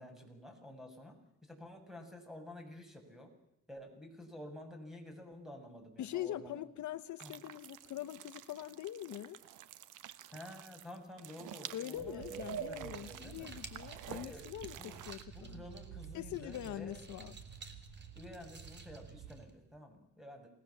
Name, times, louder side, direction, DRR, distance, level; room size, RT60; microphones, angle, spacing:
voice 1, 0.0-3.3 3.7-6.6 7.2-7.3 10.3-13.5 14.0-14.4 14.8-15.0 15.3-17.0 18.2-20.5, left 1 dB, ahead, 5 dB, 7.1 m, -51 dB
voice 2, 6.0-9.4 11.7-15.6 16.1-17.4, left 12 dB, 70° left, 12 dB, 1.1 m, -43 dB
sound 1, 7.2-15.2, right 12 dB, 90° right, 1.2 m, -51 dB
sound 2, 11.9-19.5, right 7 dB, 75° right, 4.5 m, -48 dB
sound 3, 12.9-19.8, right 4 dB, 35° right, 3.5 m, -56 dB
28.0 x 19.5 x 7.3 m, 0.84 s
cardioid pair, 90°, 30 cm